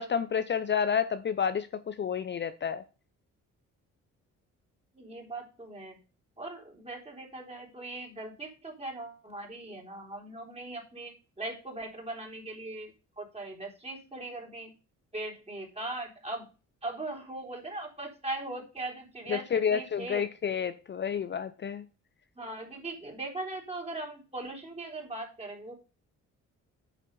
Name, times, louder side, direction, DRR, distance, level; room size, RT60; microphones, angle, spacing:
voice 1, 0.0-2.8 19.3-21.8, left 7 dB, 35° left, 0.6 m, -30 dB
voice 2, 4.9-6.0 6.4-12.9 13.2-14.7 15.1-16.5 16.8-20.3 22.4-25.7, right 2 dB, 20° right, 3.8 m, -39 dB
9.2 x 5.8 x 5.4 m
cardioid pair, 90°, 30 cm